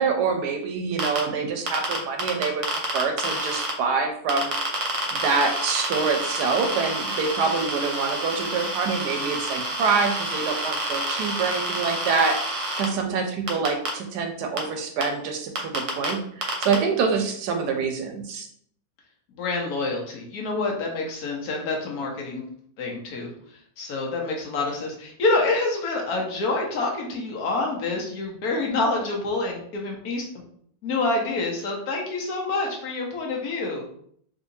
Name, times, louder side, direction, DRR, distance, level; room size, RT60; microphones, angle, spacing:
voice 1, 0.0-4.5 4.9-12.3 12.8-18.5, right 5 dB, 80° right, 4 dB, 1.1 m, -26 dB
sound 1, 1.0-1.2 1.7-3.7 4.3-12.9 13.5-13.9 14.6-14.7 15.0-15.1 15.6-16.1 16.4-16.7, right 2 dB, 55° right, 1.0 m, -28 dB
voice 2, 19.3-22.4 22.8-30.2 30.8-33.8, left 3 dB, 70° left, 0 dB, 1.2 m, -27 dB
3.7 x 2.8 x 2.6 m, 0.65 s
omnidirectional pair, 1.8 m